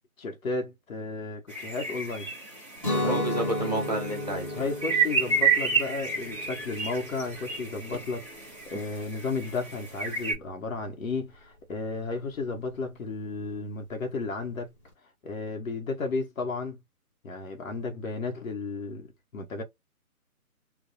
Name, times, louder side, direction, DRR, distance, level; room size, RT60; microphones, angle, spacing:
voice 1, 0.2-2.3 2.9-3.2 4.5-14.7 15.2-16.8 17.2-19.6, left 3 dB, 65° left, 1.0 m, -33 dB
sound 1, 1.5-10.3, right 5 dB, ahead, 1.0 m, -31 dB
Guitar, 2.8-8.6, left 1 dB, 20° left, 0.8 m, -34 dB
voice 2, 3.1-4.6, right 1 dB, 30° right, 0.6 m, -30 dB
2.4 x 2.0 x 2.7 m
hypercardioid pair, 175°, 44 cm